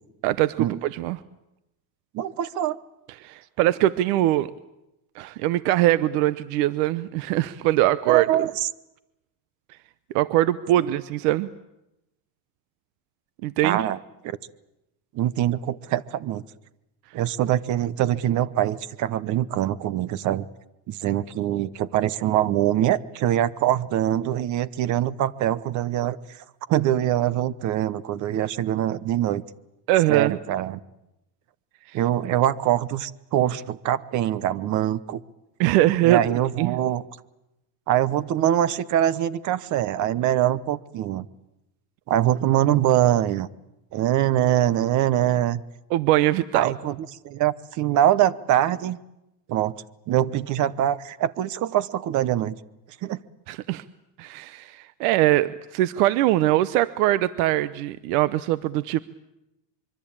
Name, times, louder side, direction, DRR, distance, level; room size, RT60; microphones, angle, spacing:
voice 1, 0.2-1.2 3.1-4.5 5.1-8.4 9.7-9.8 10.1-11.5 13.4-13.9 29.9-30.4 31.9-32.0 35.6-36.8 45.9-46.7 53.5-53.8 54.2-59.0, right 15 dB, 65° right, 16 dB, 0.9 m, -22 dB
voice 2, 2.1-2.8 8.1-8.7 13.6-14.0 14.2-14.4 15.1-16.4 17.1-20.5 20.9-26.2 26.7-29.4 30.1-30.8 31.9-35.2 36.0-37.0 37.9-41.3 42.1-43.5 43.9-45.6 46.5-46.9 47.2-49.0 49.5-49.7 50.1-52.5 53.0-53.2, right 12 dB, 40° right, 19 dB, 0.9 m, -23 dB
25.0 x 23.5 x 8.8 m, 0.93 s
cardioid pair, 155°, 46 cm